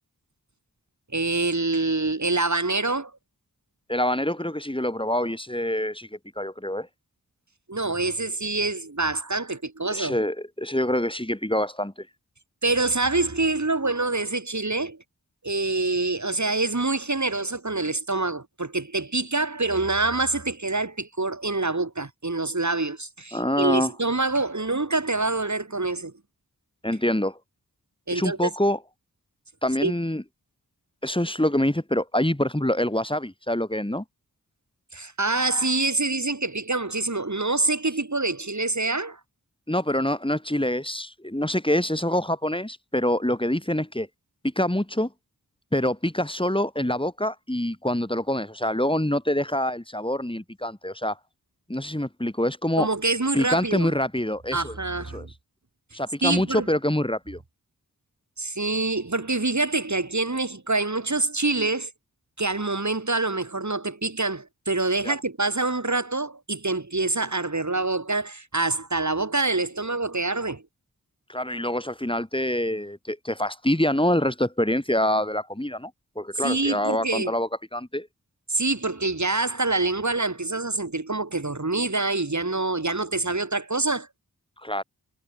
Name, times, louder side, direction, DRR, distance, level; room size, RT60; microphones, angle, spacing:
voice 1, 1.1-3.1 7.7-10.2 12.6-15.0 15.4-26.1 28.1-28.5 29.8-29.9 34.9-39.2 52.8-53.9 54.5-55.3 56.2-56.7 58.4-61.9 62.4-70.6 76.4-77.3 78.5-84.1, right 3 dB, 50° right, 7.7 m, -26 dB
voice 2, 3.9-6.1 6.4-6.9 9.9-12.1 23.3-23.9 26.8-27.4 28.1-28.8 29.6-30.2 31.0-34.0 39.7-44.1 44.4-45.1 45.7-51.2 51.7-52.9 53.3-54.7 55.1-55.3 55.9-57.4 65.0-65.1 71.3-75.9 76.2-78.1 84.6-84.8, left 1 dB, 15° left, 5.5 m, -25 dB
wide cardioid pair, 45°, 37 cm